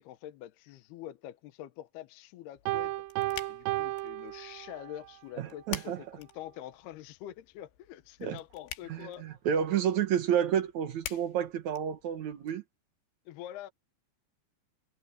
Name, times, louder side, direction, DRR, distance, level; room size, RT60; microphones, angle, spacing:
voice 1, 0.0-2.9 3.5-9.3 13.3-13.7, left 12 dB, 75° left, 2.8 m, -45 dB
sound 1, 2.6-12.5, left 12 dB, 90° left, 3.7 m, -48 dB
Piano, 2.7-5.1, right 17 dB, 85° right, 2.6 m, -34 dB
voice 2, 5.4-6.0 8.2-8.4 8.9-12.6, right 9 dB, 65° right, 1.9 m, -30 dB
omnidirectional pair, 5.0 m